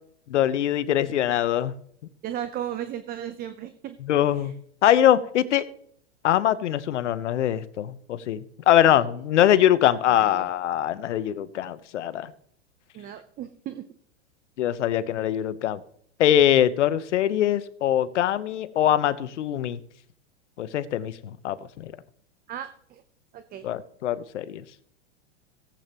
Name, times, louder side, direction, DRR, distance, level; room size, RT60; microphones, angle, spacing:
voice 1, 0.3-1.7 4.0-4.5 4.8-5.7 6.2-8.4 8.7-12.3 14.6-15.8 16.2-19.8 20.6-21.9 23.6-24.6, left 11 dB, 80° left, 15 dB, 1.0 m, -22 dB
voice 2, 2.2-4.0 4.3-4.5 8.9-9.0 10.1-10.5 12.9-13.8 22.5-23.0 23.3-23.7, right 10 dB, 25° right, 10 dB, 0.7 m, -35 dB
17.5 x 8.6 x 3.0 m, 0.63 s
hypercardioid pair, 120°, 35 cm